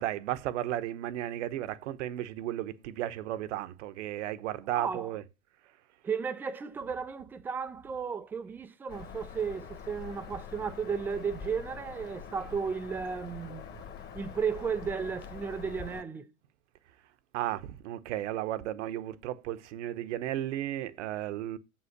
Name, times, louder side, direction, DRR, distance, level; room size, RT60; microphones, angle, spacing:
voice 1, 0.0-5.2 12.4-12.5 17.3-21.6, right 13 dB, 55° right, 1.0 m, -34 dB
voice 2, 4.7-5.1 6.0-13.6 14.1-16.3, right 6 dB, 5° right, 0.4 m, -34 dB
Bird vocalization bird call bird song, 8.9-16.0, left 7 dB, 25° left, 1.3 m, -45 dB
7.6 x 5.7 x 6.6 m
hypercardioid pair, 110°, 43 cm